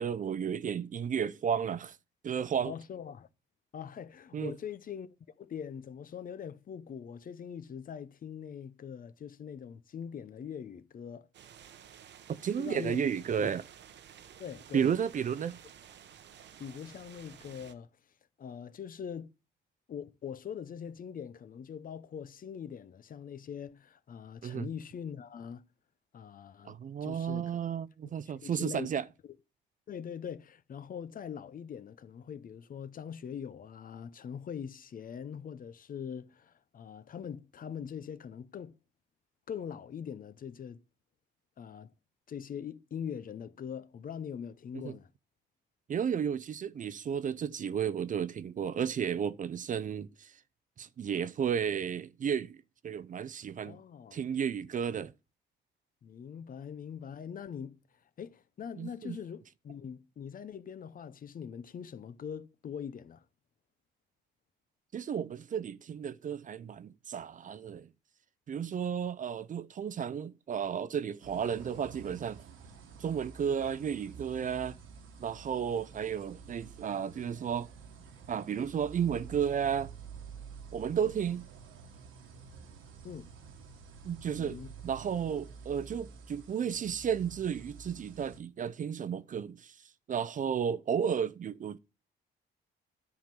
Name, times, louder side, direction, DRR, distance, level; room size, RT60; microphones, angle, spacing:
voice 1, 0.0-2.0 2.2-2.7 4.3-4.5 12.4-13.6 14.7-15.6 24.4-24.7 26.6-29.1 44.7-44.9 45.9-50.3 50.8-52.6 52.8-53.8 54.1-55.1 58.8-59.2 64.9-67.9 68.5-72.4 73.0-74.8 75.2-77.7 78.3-79.9 80.7-81.5 84.0-84.6 84.8-89.7 90.1-91.8, right 8 dB, 40° right, 0.5 m, -33 dB
voice 2, 2.6-3.3 3.7-5.1 5.4-11.3 12.6-13.0 13.4-13.5 14.4-14.9 16.6-17.9 18.4-19.3 19.9-25.6 26.1-27.6 28.0-28.1 28.4-28.9 29.9-38.7 39.5-40.8 41.6-41.9 42.3-45.1 53.6-54.3 56.0-57.8 58.2-63.2 83.0-83.3 84.4-84.8, left 7 dB, 45° left, 0.6 m, -42 dB
sound 1, 11.3-17.7, right 9 dB, 65° right, 0.8 m, -53 dB
sound 2, 71.2-88.4, right 5 dB, 90° right, 1.4 m, -50 dB
10.0 x 3.8 x 7.4 m
cardioid pair, 90°, 20 cm